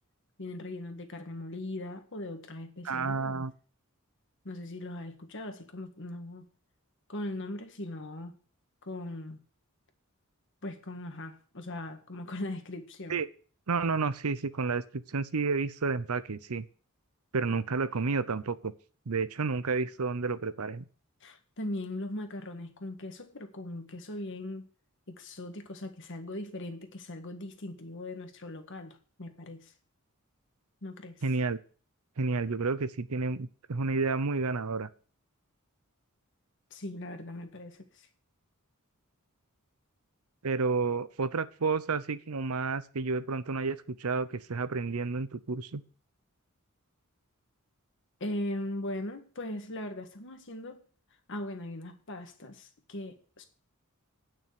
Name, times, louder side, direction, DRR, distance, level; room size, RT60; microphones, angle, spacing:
voice 1, 0.4-3.5 4.5-6.5 7.1-8.4 8.8-9.4 10.6-13.2 21.2-24.7 25.1-29.7 30.8-31.2 36.7-38.1 48.2-50.8 51.3-53.4, left 1 dB, 60° left, 1.8 m, -39 dB
voice 2, 2.8-3.5 13.1-13.3 13.7-16.7 17.3-18.7 19.1-20.8 31.2-31.6 32.2-34.9 40.4-45.8, right 4 dB, 85° right, 0.8 m, -30 dB
9.4 x 6.3 x 8.3 m
head